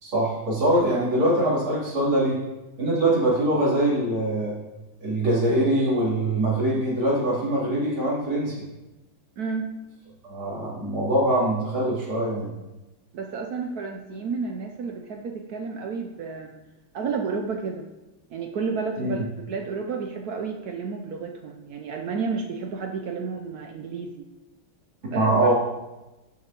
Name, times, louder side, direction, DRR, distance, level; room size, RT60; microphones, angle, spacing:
voice 1, 0.0-2.4 2.8-4.6 5.0-8.6 10.2-12.5 19.0-19.1 25.0-25.5, right 1 dB, 90° right, -8 dB, 4.0 m, -23 dB
voice 2, 9.4-9.7 13.1-16.6 16.9-17.9 18.3-24.3 25.1-25.3, right 5 dB, 70° right, 3 dB, 0.9 m, -31 dB
11.5 x 6.7 x 3.0 m, 1.0 s
omnidirectional pair, 2.2 m